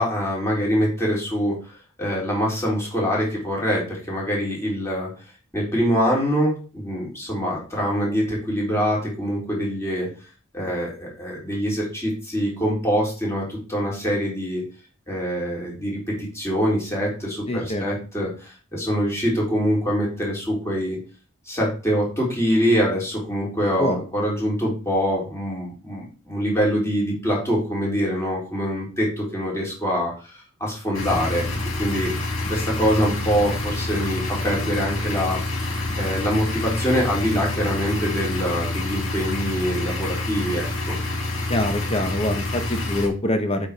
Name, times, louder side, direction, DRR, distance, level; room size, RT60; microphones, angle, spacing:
voice 1, 0.0-1.5 2.0-5.1 5.5-10.1 10.5-14.6 15.1-21.0 21.5-31.5 31.8-35.7 36.0-40.9, equal, 15° left, -4 dB, 3.6 m, -24 dB
voice 2, 17.5-17.9 23.8-24.0 41.5-43.7, left 1 dB, 30° left, 6 dB, 1.2 m, -24 dB
sound 1, 30.9-43.1, left 2 dB, 65° left, 2.7 m, -27 dB
7.9 x 5.2 x 4.3 m, 0.36 s
head